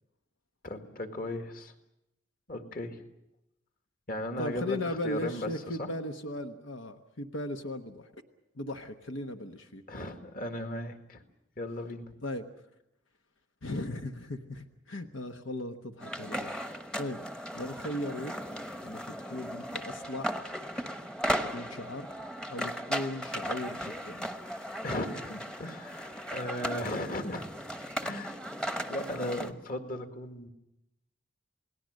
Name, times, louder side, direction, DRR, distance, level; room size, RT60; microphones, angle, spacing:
voice 1, 0.6-1.7 2.5-3.1 4.1-5.9 9.9-11.2 11.6-12.2 24.8-27.4 27.8-28.4 28.9-30.5, left 1 dB, 45° left, 6 dB, 2.0 m, -36 dB
voice 2, 4.4-8.2 8.5-9.8 12.2-12.5 13.6-17.2 17.5-18.4 18.8-20.4 21.4-22.1 22.5-24.3, left 1 dB, 90° left, 6 dB, 1.2 m, -37 dB
sound 1, 16.0-29.5, equal, 5° left, 0.9 m, -37 dB
28.5 x 19.0 x 6.5 m, 0.85 s
head